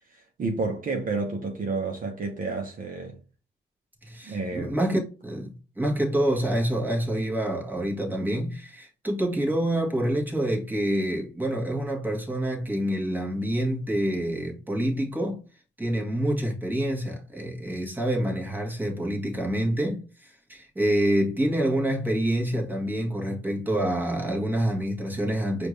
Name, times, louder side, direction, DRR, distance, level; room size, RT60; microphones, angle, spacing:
voice 1, 0.1-3.2 4.2-4.8, right 3 dB, 45° right, 0.9 m, -30 dB
voice 2, 4.0-15.4 15.8-25.7, right 1 dB, 10° right, 1.5 m, -27 dB
5.0 x 2.6 x 3.2 m
cardioid pair, 90°, 20 cm